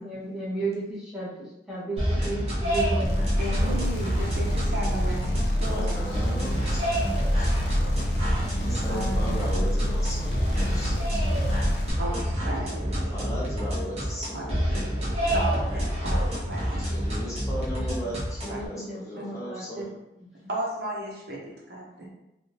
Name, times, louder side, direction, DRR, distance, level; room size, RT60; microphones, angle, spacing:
voice 1, 0.0-3.3 17.9-18.2 18.4-19.9 20.2-20.4, right 2 dB, 5° right, -9 dB, 1.0 m, -34 dB
sound 1, 2.0-18.7, equal, 35° right, 0.9 m, -28 dB
sound 2, 3.0-11.9, equal, 60° left, 0.5 m, -28 dB
voice 2, 3.4-6.2 8.9-9.7 12.0-12.9 14.3-14.4 15.3-16.9 18.5-18.6 19.2-19.3 20.5-22.1, right 1 dB, 65° right, -3 dB, 0.8 m, -34 dB
voice 3, 5.7-7.6 8.5-11.2 13.1-14.4 16.8-19.9, equal, 20° left, -5 dB, 0.6 m, -36 dB
sound 3, 12.4-17.4, right 2 dB, 85° right, 0.4 m, -44 dB
3.5 x 2.4 x 2.8 m, 0.92 s
head